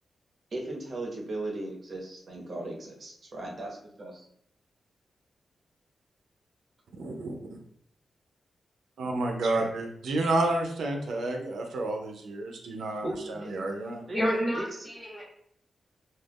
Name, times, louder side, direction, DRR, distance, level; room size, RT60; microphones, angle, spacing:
voice 1, 0.5-4.2 13.0-13.5 14.1-14.2 14.5-14.9, right 2 dB, 50° right, 0 dB, 0.7 m, -37 dB
voice 2, 7.0-7.4 9.0-14.0, right 2 dB, 85° right, 2 dB, 0.4 m, -30 dB
voice 3, 14.1-15.2, equal, 15° left, -3 dB, 1.0 m, -29 dB
2.3 x 2.3 x 3.4 m, 0.67 s
cardioid pair, 95°, 0 cm